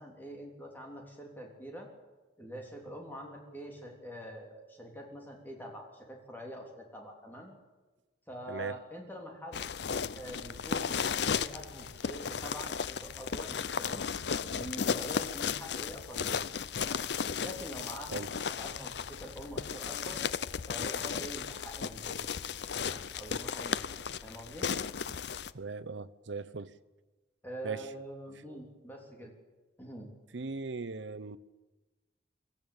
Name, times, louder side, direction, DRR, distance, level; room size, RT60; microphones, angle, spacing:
voice 1, 0.0-1.9 2.4-7.5 8.3-9.6 10.1-14.1 14.5-16.5 16.8-17.1 17.4-18.2 18.5-20.2 20.7-22.3 22.7-24.0 24.2-24.7 27.4-29.3 29.8-30.1, equal, 10° left, 3.3 m, -45 dB
voice 2, 8.5-8.8 18.1-18.3 25.5-26.7 27.6-27.9 30.3-31.4, right 4 dB, 75° right, 0.8 m, -38 dB
sound 1, 9.5-25.5, left 6 dB, 65° left, 0.6 m, -35 dB
23.0 x 14.5 x 8.8 m
head